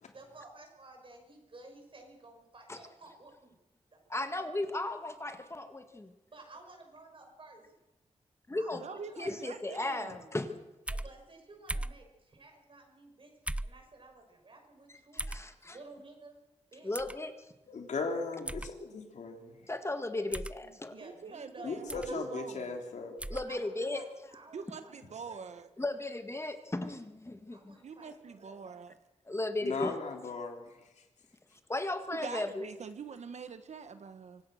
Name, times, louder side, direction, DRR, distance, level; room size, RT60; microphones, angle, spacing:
voice 1, 0.1-3.5 3.9-4.3 6.3-7.6 8.6-9.6 10.9-13.3 13.6-15.2 15.6-16.3 16.7-16.9 20.9-22.2 23.3-23.6 23.9-25.4 27.5-28.7, right 2 dB, 50° right, 3 dB, 6.0 m, -53 dB
voice 2, 4.1-6.1 8.5-8.8 9.2-10.6 15.3-15.8 16.8-17.3 19.7-21.0 23.3-24.1 25.8-27.8 29.3-30.0 31.7-32.7, left 2 dB, 25° left, 8 dB, 1.7 m, -35 dB
voice 3, 8.8-10.3 20.7-22.9 24.5-25.7 27.8-29.0 30.4-30.5 32.1-34.4, right 5 dB, 75° right, 10 dB, 1.4 m, -45 dB
sound 1, 10.9-11.1 11.7-12.0 13.5-13.8 15.2-15.4 16.9-17.2 18.5-18.7 20.3-20.6 21.9-22.1 23.2-23.5, right 1 dB, 10° right, 0.6 m, -37 dB
voice 4, 17.7-19.7 21.6-23.2 29.6-30.8, left 4 dB, 90° left, 3 dB, 3.1 m, -37 dB
25.0 x 17.0 x 6.5 m, 1.0 s
wide cardioid pair, 80°, 12 cm